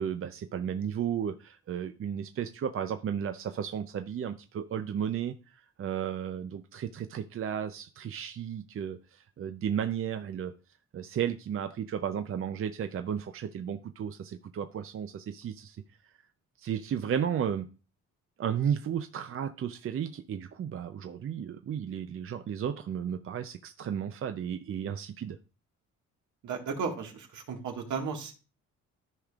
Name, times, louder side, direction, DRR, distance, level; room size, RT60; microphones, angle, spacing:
voice 1, 0.0-10.5 10.9-15.8 16.6-17.7 18.4-25.4, right 8 dB, 45° right, 0.6 m, -34 dB
voice 2, 26.4-28.3, right 5 dB, 75° right, 1.9 m, -34 dB
13.5 x 5.0 x 2.4 m
cardioid pair, 90°, 30 cm